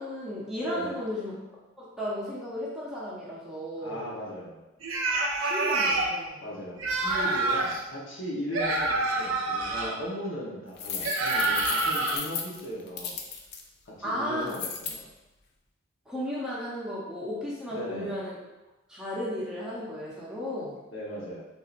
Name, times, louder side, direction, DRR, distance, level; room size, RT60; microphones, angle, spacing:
voice 1, 0.0-1.3 1.8-4.0 5.4-6.4 14.0-14.6 16.1-18.4 18.9-20.7, equal, 5° right, -7 dB, 0.6 m, -34 dB
voice 2, 0.6-1.0 3.8-4.6 6.4-13.2 13.9-15.0 17.7-18.1 20.9-21.4, equal, 80° left, -5 dB, 1.0 m, -37 dB
sound 1, 4.8-6.1 6.8-7.8 8.5-9.9 11.0-12.2, right 2 dB, 85° right, 0.5 m, -27 dB
sound 2, 10.8-13.6 14.5-15.0, left 6 dB, 55° left, 0.4 m, -34 dB
3.5 x 2.8 x 2.5 m, 1.0 s
head